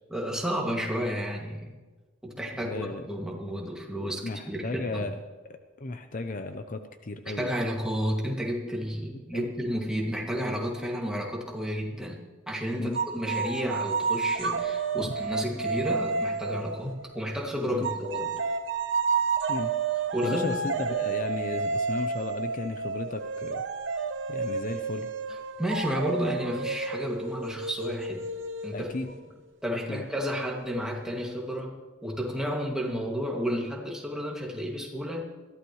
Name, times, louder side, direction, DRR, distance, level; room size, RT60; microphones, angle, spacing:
voice 1, 0.1-1.8 2.2-5.1 7.3-12.2 12.5-18.4 20.1-20.8 25.3-28.3 28.6-29.1 29.6-35.2, equal, 5° right, -1 dB, 2.2 m, -32 dB
voice 2, 2.5-3.1 4.2-5.2 5.8-7.5 9.3-9.5 12.8-13.0 15.0-15.1 17.7-17.9 19.5-19.7 20.2-23.6 24.3-25.1 28.7-29.1 29.9-30.0, left 2 dB, 45° left, 8 dB, 0.7 m, -34 dB
sound 1, 12.9-17.3 17.8-29.2, right 4 dB, 70° right, 1.0 m, -31 dB
21.5 x 15.0 x 3.2 m, 1.3 s
head